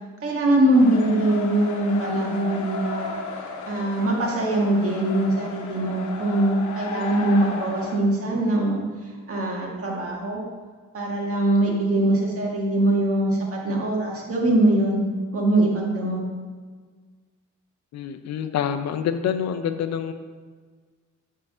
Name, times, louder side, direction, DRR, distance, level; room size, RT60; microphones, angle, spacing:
voice 1, 0.2-10.4 10.9-15.1 15.3-16.2, right 1 dB, 50° right, -1 dB, 1.7 m, -22 dB
sound 1, 0.7-8.0, left 4 dB, 80° left, 0.9 m, -34 dB
voice 2, 17.9-20.1, left 8 dB, 60° left, 9 dB, 0.5 m, -26 dB
6.6 x 3.7 x 5.5 m, 1.5 s
cardioid pair, 90°, 30 cm